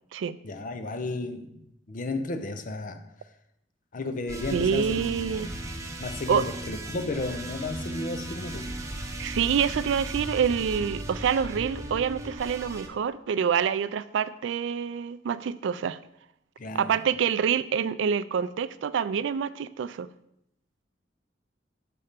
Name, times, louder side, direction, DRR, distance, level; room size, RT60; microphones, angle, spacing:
voice 1, 0.4-3.0 3.9-5.0 6.0-8.7 16.6-17.0, left 2 dB, 45° left, 0.5 m, -33 dB
sound 1, 4.3-12.9, right 1 dB, 15° right, 0.7 m, -36 dB
voice 2, 4.5-5.5 6.3-6.4 9.2-16.0 16.7-20.1, right 7 dB, 75° right, 0.3 m, -26 dB
6.7 x 4.2 x 5.1 m
head